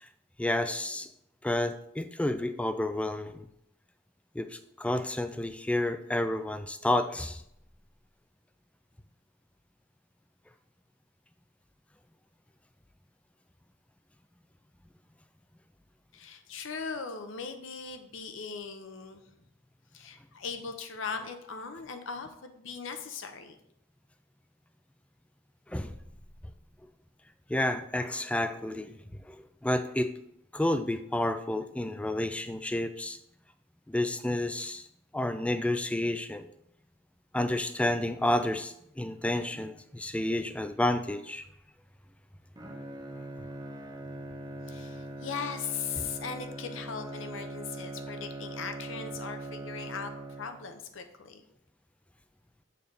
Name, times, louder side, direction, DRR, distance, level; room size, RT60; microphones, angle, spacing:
voice 1, 0.4-1.1 1.4-3.5 4.4-7.4 25.7-25.9 27.5-29.0 29.2-30.1 30.5-33.2 33.9-34.9 35.1-36.5 37.3-41.4, left 1 dB, 5° left, 9 dB, 0.3 m, -30 dB
voice 2, 16.1-19.2 19.9-23.6 44.7-51.4, left 5 dB, 70° left, 7 dB, 0.7 m, -39 dB
Bowed string instrument, 42.6-50.9, right 1 dB, 20° right, 0.7 m, -41 dB
6.8 x 3.3 x 5.3 m, 0.76 s
head